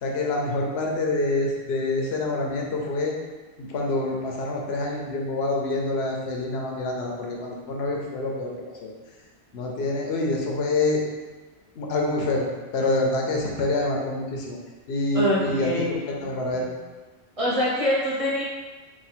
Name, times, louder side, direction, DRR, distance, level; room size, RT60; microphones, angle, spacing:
voice 1, 0.0-3.1 3.6-8.5 8.8-8.9 9.5-11.0 11.8-12.4 12.7-14.6 14.9-16.7, left 2 dB, 75° left, -1 dB, 0.9 m, -26 dB
voice 2, 15.1-16.0 17.4-18.4, equal, 35° right, -8 dB, 1.0 m, -24 dB
3.6 x 2.4 x 4.3 m, 1.3 s
omnidirectional pair, 1.1 m